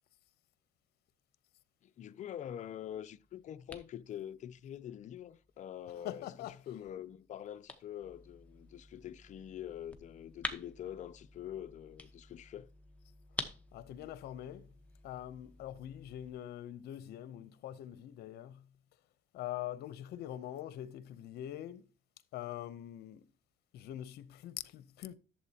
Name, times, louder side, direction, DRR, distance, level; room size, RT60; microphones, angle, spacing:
voice 1, 1.8-6.3 6.7-12.7, left 10 dB, 45° left, 0.5 m, -45 dB
sound 1, 2.8-16.3, left 2 dB, 10° left, 1.1 m, -49 dB
voice 2, 5.9-6.6 13.7-14.7 15.0-18.6 19.3-21.8 22.3-23.2 23.7-25.1, left 12 dB, 75° left, 0.7 m, -43 dB
11.5 x 7.5 x 2.8 m
cardioid pair, 110°, 17 cm